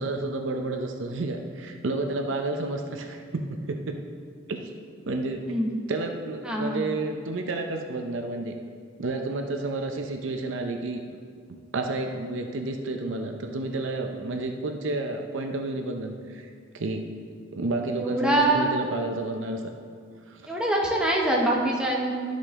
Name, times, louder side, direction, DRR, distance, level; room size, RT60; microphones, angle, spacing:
voice 1, 0.0-4.0 4.5-4.7 5.1-5.5 5.9-8.5 9.0-11.0 11.7-16.5 16.7-17.1 17.5-19.6 20.3-20.6, right 2 dB, 65° right, 4 dB, 0.6 m, -30 dB
voice 2, 6.4-6.8 18.0-18.7 20.5-22.1, right 1 dB, 5° right, -2 dB, 0.9 m, -24 dB
12.0 x 5.3 x 3.6 m, 2.1 s
head